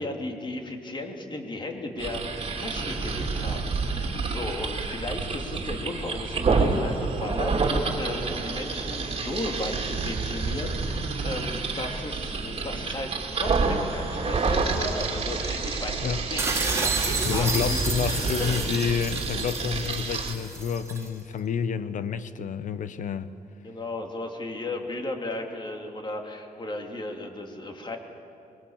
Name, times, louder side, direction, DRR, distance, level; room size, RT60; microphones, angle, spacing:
voice 1, 0.0-18.6 23.6-28.0, left 2 dB, 30° left, 3 dB, 2.9 m, -35 dB
sound 1, 2.0-20.3, right 4 dB, 40° right, 2.9 m, -28 dB
sound 2, 16.4-21.1, right 3 dB, 20° right, 2.9 m, -31 dB
voice 2, 17.2-23.3, left 7 dB, 60° left, 13 dB, 1.0 m, -29 dB
24.5 x 22.0 x 7.3 m, 2.7 s
cardioid pair, 100°, 15 cm